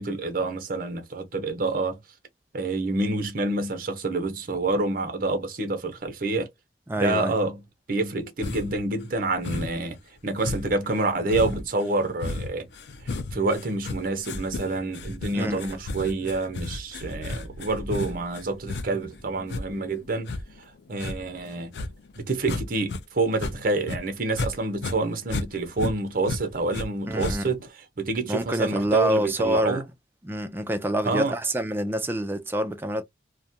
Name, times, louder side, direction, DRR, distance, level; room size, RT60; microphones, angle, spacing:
voice 1, 0.0-2.0 2.5-6.5 7.0-7.6 7.9-10.0 10.2-12.7 13.0-20.4 20.9-21.8 22.2-27.6 28.0-29.8 31.0-31.3, right 2 dB, 50° right, 0.7 m, -27 dB
voice 2, 6.9-7.3 15.3-15.6 27.0-27.5 28.3-29.8 30.2-33.0, equal, 10° right, 0.3 m, -26 dB
sound 1, 8.4-8.8 9.4-9.9 10.4-23.0 23.3-24.5 24.8-26.9 27.2-27.7, left 3 dB, 65° left, 0.4 m, -33 dB
2.4 x 2.1 x 2.6 m
head